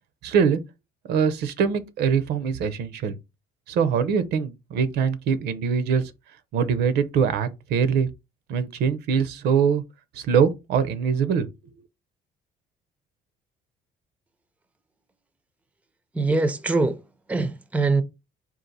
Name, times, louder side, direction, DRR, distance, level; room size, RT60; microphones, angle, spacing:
voice 1, 0.2-0.6 1.1-3.2 3.7-6.0 6.5-8.1 8.5-9.8 10.1-11.5, right 6 dB, 75° right, 0.7 m, -23 dB
voice 2, 16.1-17.0 17.3-18.0, right 3 dB, 10° right, 0.5 m, -23 dB
3.9 x 2.5 x 4.0 m
cardioid pair, 110°, 17 cm